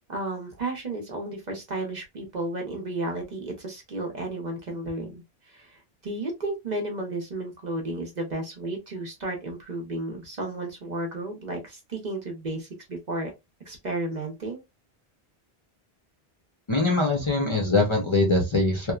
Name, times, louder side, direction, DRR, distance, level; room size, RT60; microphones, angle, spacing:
voice 1, 0.1-13.3 13.7-14.6, right 2 dB, 45° right, 0.8 m, -33 dB
voice 2, 16.7-18.9, left 2 dB, 35° left, 0.6 m, -22 dB
2.9 x 2.0 x 2.3 m
omnidirectional pair, 1.1 m